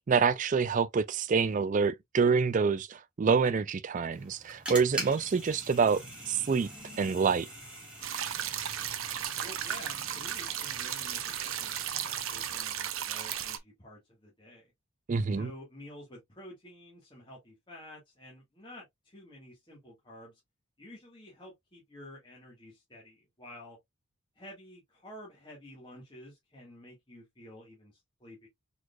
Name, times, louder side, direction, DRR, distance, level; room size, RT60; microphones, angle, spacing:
voice 1, 0.0-6.7 7.0-7.5 15.1-15.5, right 5 dB, 35° right, 0.3 m, -27 dB
sound 1, 4.1-12.5, right 1 dB, 5° right, 2.2 m, -44 dB
sound 2, 8.0-13.6, right 10 dB, 70° right, 0.7 m, -35 dB
voice 2, 9.4-14.7 15.3-20.4 20.8-23.8 24.4-28.5, left 1 dB, 20° left, 1.7 m, -50 dB
4.7 x 4.1 x 2.4 m
head